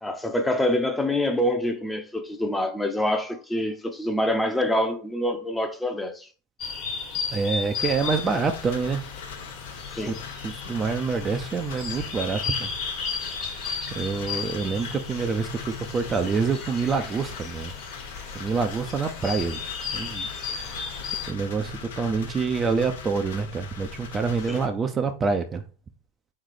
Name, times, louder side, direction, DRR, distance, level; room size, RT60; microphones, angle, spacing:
voice 1, 0.0-6.3 10.0-10.1 24.5-24.6, left 1 dB, 10° left, 0.7 m, -26 dB
sound 1, 6.6-21.3, left 5 dB, 45° left, 1.4 m, -35 dB
voice 2, 7.3-9.0 10.1-10.2 10.4-12.7 13.3-13.5 13.9-17.7 18.3-20.9 21.3-25.6, right 5 dB, 25° right, 0.6 m, -27 dB
sound 2, 7.7-24.7, left 6 dB, 80° left, 0.9 m, -40 dB
3.9 x 3.3 x 3.8 m
hypercardioid pair, 100°, 0 cm